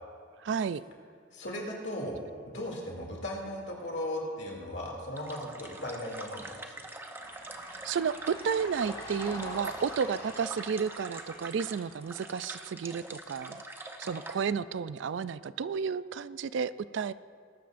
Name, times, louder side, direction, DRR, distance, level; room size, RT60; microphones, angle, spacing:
voice 1, 0.4-0.8 7.7-13.6 14.0-17.1, right 6 dB, 65° right, 16 dB, 0.3 m, -32 dB
voice 2, 1.3-2.2 2.5-6.8, left 1 dB, 60° left, -1 dB, 2.6 m, -37 dB
sound 1, 5.2-14.4, right 2 dB, 10° right, 0.6 m, -44 dB
sound 2, 7.0-12.2, left 2 dB, 20° left, 1.2 m, -47 dB
21.0 x 12.5 x 2.6 m, 2.1 s
head